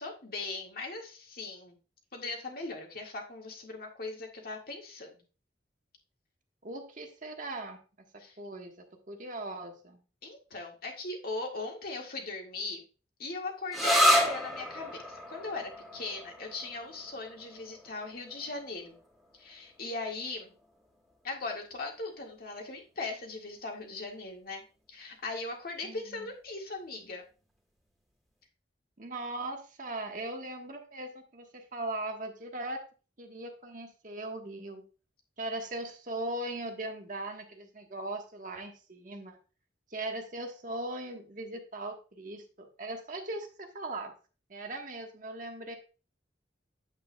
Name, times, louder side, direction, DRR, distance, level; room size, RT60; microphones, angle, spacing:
voice 1, 0.0-1.8 2.1-5.2 8.2-8.3 10.2-12.8 13.2-19.0 19.3-20.5 21.2-24.6 24.9-27.2, left 3 dB, 55° left, 1 dB, 1.8 m, -39 dB
voice 2, 6.6-7.8 8.4-10.0 25.8-26.3 29.0-32.8 33.2-34.8 35.4-39.4 39.9-44.1 44.5-45.8, right 2 dB, 45° right, 4 dB, 1.3 m, -39 dB
sound 1, 13.7-21.1, equal, ahead, 1.8 m, -31 dB
8.8 x 8.0 x 2.2 m, 0.35 s
head